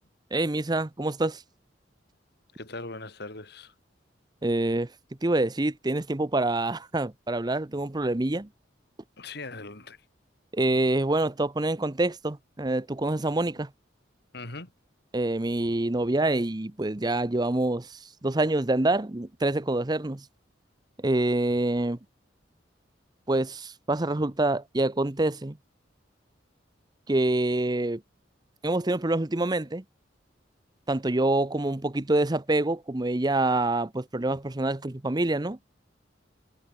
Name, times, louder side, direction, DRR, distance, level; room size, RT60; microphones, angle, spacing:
voice 1, 0.3-1.4 4.4-4.9 5.2-8.5 10.5-13.7 15.1-20.2 21.0-22.0 23.3-25.6 27.1-28.0 28.6-29.8 30.9-35.6, right 2 dB, 20° right, 0.8 m, -26 dB
voice 2, 2.6-3.7 9.2-10.0 14.3-14.7, left 3 dB, 60° left, 3.3 m, -40 dB
head